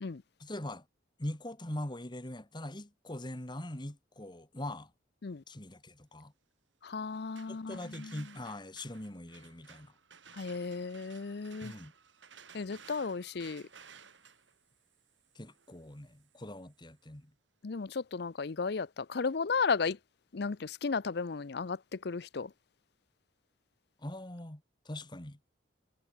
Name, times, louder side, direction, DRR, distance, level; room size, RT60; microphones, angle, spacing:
voice 1, 0.4-0.8 1.2-4.9 5.5-6.3 7.5-9.9 11.6-11.9 15.4-17.3 24.0-25.4, left 1 dB, 25° left, 1.8 m, -42 dB
voice 2, 6.8-8.2 10.3-11.7 12.5-13.6 17.6-20.0 20.3-22.5, left 4 dB, 60° left, 0.6 m, -34 dB
sound 1, 7.1-16.9, right 6 dB, 85° right, 5.8 m, -57 dB
head